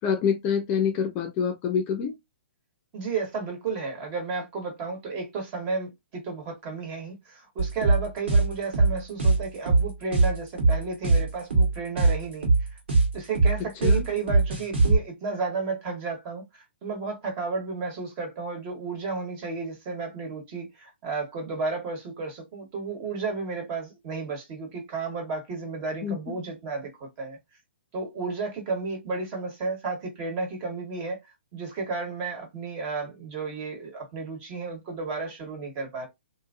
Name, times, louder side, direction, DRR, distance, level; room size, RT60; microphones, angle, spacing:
voice 1, 0.0-2.1 13.8-14.0 26.0-26.2, left 7 dB, 30° left, 0.5 m, -26 dB
voice 2, 2.9-12.5 13.1-27.4 27.9-31.2 31.5-36.1, right 4 dB, 35° right, 1.3 m, -33 dB
sound 1, 7.6-15.0, right 3 dB, 65° right, 1.4 m, -21 dB
2.7 x 2.6 x 2.4 m
hypercardioid pair, 125°, 6 cm